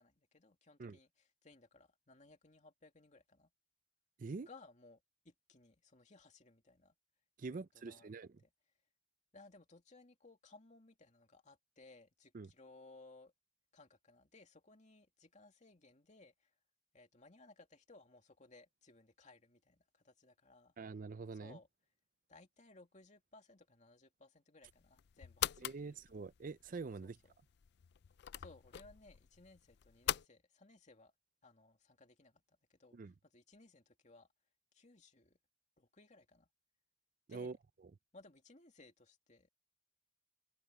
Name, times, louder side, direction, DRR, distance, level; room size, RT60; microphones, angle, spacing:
voice 1, 0.0-3.5 4.5-6.9 7.4-8.1 8.4-8.5 9.3-13.3 13.7-16.5 16.9-20.7 21.4-21.7 22.3-26.0 27.0-27.3 28.4-31.1 31.4-33.0 33.2-34.3 34.7-35.4 35.8-36.5 37.3-37.6 38.1-39.5, left 3 dB, 40° left, 2.6 m, -62 dB
voice 2, 7.4-8.3 12.3-12.5 20.8-21.6 25.6-27.2 32.9-33.1 37.3-37.6, right 4 dB, 50° right, 0.5 m, -45 dB
sound 1, 24.6-30.3, left 11 dB, 65° left, 0.4 m, -43 dB
head